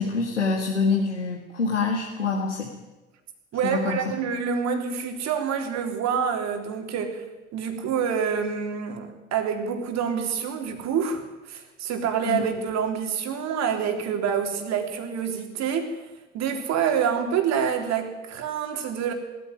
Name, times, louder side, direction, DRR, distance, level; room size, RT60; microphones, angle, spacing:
voice 1, 0.0-2.7 3.6-4.2 12.3-12.4, left 4 dB, 85° left, 0 dB, 2.0 m, -26 dB
voice 2, 3.5-7.2 7.5-16.0 16.3-19.1, right 7 dB, 50° right, 5 dB, 3.6 m, -27 dB
20.0 x 14.0 x 9.4 m, 1.1 s
figure-of-eight pair, 60°, 35 cm